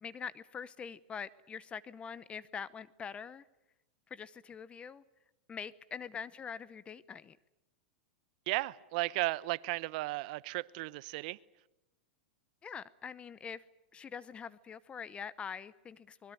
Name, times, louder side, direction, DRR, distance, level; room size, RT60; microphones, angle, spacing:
voice 1, 0.0-3.4 4.1-5.0 5.5-7.4 12.6-13.6 13.9-16.3, left 6 dB, 20° left, 18 dB, 0.8 m, -44 dB
voice 2, 8.5-11.4, right 20 dB, 55° right, 19 dB, 0.9 m, -35 dB
24.5 x 21.0 x 9.2 m, 0.91 s
hypercardioid pair, 120°, 5 cm